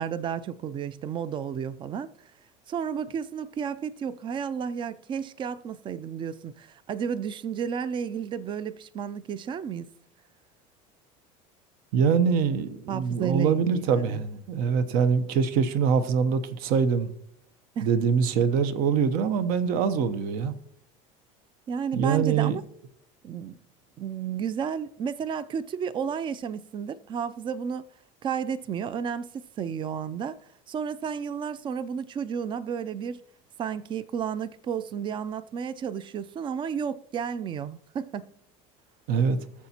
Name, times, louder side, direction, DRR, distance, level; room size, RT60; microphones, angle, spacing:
voice 1, 0.0-2.1 2.7-9.9 12.9-14.2 17.8-17.9 21.7-22.6 23.2-23.6 24.0-27.9 28.2-30.4 30.7-33.2 33.6-38.3, right 7 dB, 30° right, 0.4 m, -32 dB
voice 2, 11.9-17.1 17.8-20.6 21.9-22.6 39.1-39.4, right 6 dB, 65° right, 0.9 m, -24 dB
21.0 x 7.1 x 2.9 m
supercardioid pair, 125°, 16 cm